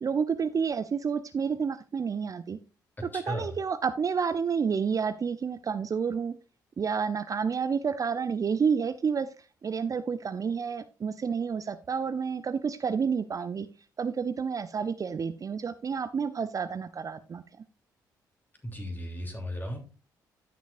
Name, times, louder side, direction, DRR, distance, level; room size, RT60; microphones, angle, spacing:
voice 1, 0.0-2.6 3.1-6.4 6.8-9.3 9.6-13.7 14.0-17.4, right 6 dB, 35° right, 12 dB, 0.5 m, -29 dB
voice 2, 3.1-3.5 18.6-19.8, equal, 20° left, 3 dB, 3.0 m, -35 dB
15.5 x 6.1 x 2.5 m, 0.32 s
figure-of-eight pair, 40°, 10 cm